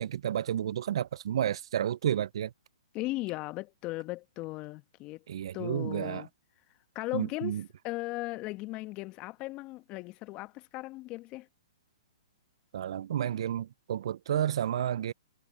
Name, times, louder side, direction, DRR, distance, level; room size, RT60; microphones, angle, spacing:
voice 1, 0.0-2.5 5.3-6.2 7.1-7.6 12.7-15.1, right 10 dB, 65° right, 0.7 m, -31 dB
voice 2, 2.9-5.2 5.5-6.3 6.9-11.5, left 20 dB, 35° left, 1.5 m, -37 dB
hypercardioid pair, 125°, 3 cm